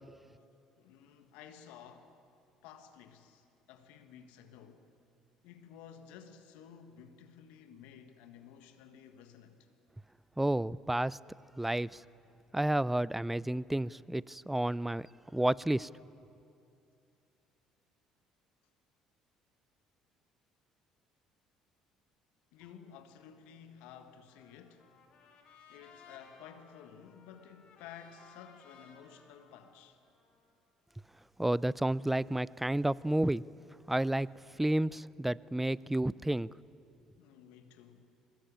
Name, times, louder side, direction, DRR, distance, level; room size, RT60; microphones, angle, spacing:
voice 1, 0.8-2.2 2.6-4.9 5.4-9.7 22.5-24.9 25.7-30.0 32.2-32.3 37.2-38.1, left 8 dB, 70° left, 1.6 m, -53 dB
voice 2, 10.4-11.2 11.6-12.0 12.5-15.1 15.3-15.9 31.4-33.4 33.9-34.3 34.6-36.5, right 1 dB, 10° right, 0.5 m, -30 dB
Trumpet, 24.3-30.5, left 5 dB, 55° left, 5.3 m, -60 dB
23.0 x 20.0 x 8.8 m
hypercardioid pair, 55°, 2 cm